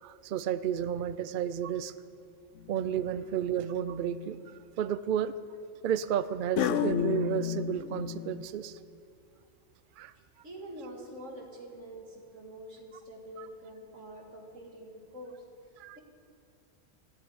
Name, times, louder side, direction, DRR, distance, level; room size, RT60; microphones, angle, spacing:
voice 1, 0.0-1.9 2.7-5.3 5.8-8.8 10.0-10.1 13.4-13.5 15.8-16.0, right 9 dB, 60° right, 14 dB, 0.6 m, -32 dB
sound 1, 2.7-3.1 3.8-4.3 6.6-8.5, left 9 dB, 75° left, 1.0 m, -32 dB
voice 2, 10.4-15.4, right 1 dB, 90° right, 1 dB, 2.4 m, -46 dB
14.5 x 8.4 x 9.5 m, 2.5 s
omnidirectional pair, 1.3 m